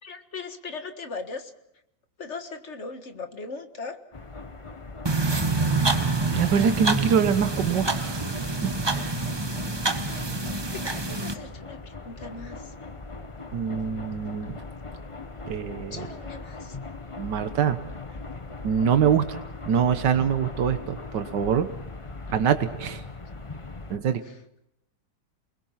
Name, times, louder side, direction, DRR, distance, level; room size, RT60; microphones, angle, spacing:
voice 1, 0.0-1.5 2.2-4.0 9.7-10.3 10.7-12.6 15.9-16.8, left 4 dB, 45° left, 7 dB, 1.8 m, -39 dB
sound 1, 4.1-24.0, left 3 dB, 20° left, 1.0 m, -40 dB
sound 2, 5.0-11.3, right 3 dB, 15° right, 1.1 m, -27 dB
voice 2, 6.3-8.2 8.8-9.2 13.5-14.6 15.5-16.1 17.2-17.8 18.6-19.4 19.6-21.7 22.3-23.0 23.9-24.2, right 7 dB, 90° right, 9 dB, 1.7 m, -24 dB
29.0 x 20.5 x 5.8 m, 0.82 s
omnidirectional pair, 1.8 m